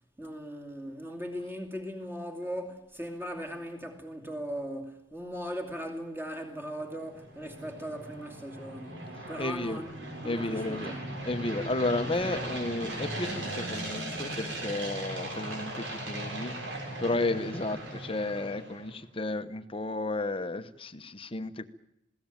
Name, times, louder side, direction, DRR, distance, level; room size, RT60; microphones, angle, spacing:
voice 1, 0.2-10.0 10.2-11.0, equal, 10° right, 2.6 m, -39 dB
sound 1, 6.6-18.9, right 1 dB, 70° right, 7.0 m, -38 dB
voice 2, 9.4-9.8 10.2-10.9 11.3-16.6 17.0-21.7, left 2 dB, 30° left, 1.0 m, -32 dB
20.5 x 17.0 x 9.1 m
head